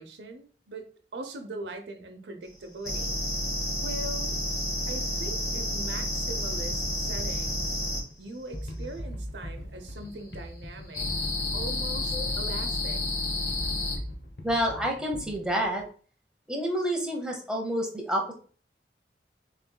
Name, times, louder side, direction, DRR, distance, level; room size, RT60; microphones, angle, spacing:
voice 1, 0.0-3.2 3.8-4.4 4.9-7.8 8.2-11.1 11.5-13.0, right 2 dB, 85° right, 6 dB, 0.8 m, -41 dB
sound 1, 2.8-8.0 10.9-14.0, left 1 dB, 20° left, 1.6 m, -30 dB
sound 2, 6.3-15.8, equal, 75° left, 0.9 m, -41 dB
voice 2, 14.4-15.8 16.5-18.3, equal, 5° right, 0 dB, 1.0 m, -28 dB
6.7 x 3.2 x 2.3 m, 0.42 s
head